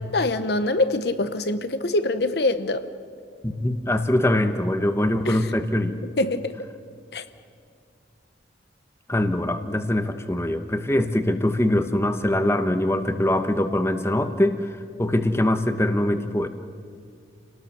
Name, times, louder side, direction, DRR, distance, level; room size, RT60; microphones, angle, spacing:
voice 1, 0.1-2.9 5.3-5.5 6.2-6.6 7.1-7.2, left 2 dB, 60° left, 0.9 m, -24 dB
voice 2, 3.4-6.0 9.1-16.5, left 1 dB, 15° left, 1.1 m, -23 dB
29.0 x 18.5 x 6.8 m
head